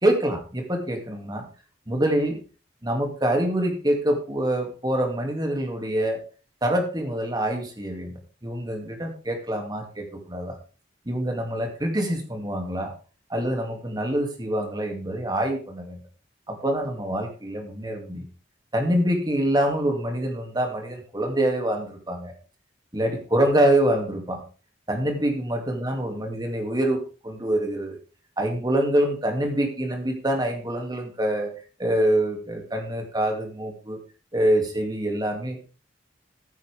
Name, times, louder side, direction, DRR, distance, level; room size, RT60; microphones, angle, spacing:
voice 1, 0.0-1.5 1.9-2.4 2.8-6.2 6.6-8.1 8.4-10.6 11.1-12.9 13.3-16.0 16.5-18.3 18.7-22.3 22.9-24.4 24.9-28.0 28.4-31.5 31.8-34.0 34.3-35.7, right 1 dB, 20° right, 3 dB, 2.5 m, -25 dB
14.5 x 8.8 x 3.5 m, 0.35 s
head